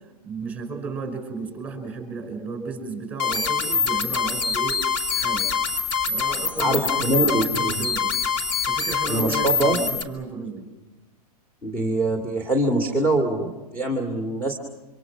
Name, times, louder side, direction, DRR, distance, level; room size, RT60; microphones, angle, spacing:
voice 1, 0.2-4.8 5.1-5.5 6.1-8.1 8.7-10.7, right 4 dB, 10° right, 5 dB, 5.7 m, -34 dB
sound 1, 3.2-10.0, left 6 dB, 40° left, 2.5 m, -25 dB
voice 2, 6.6-7.8 9.1-9.8 11.6-14.5, right 2 dB, 10° left, 0 dB, 2.2 m, -24 dB
27.0 x 25.5 x 6.1 m, 1.1 s
hypercardioid pair, 145°, 20 cm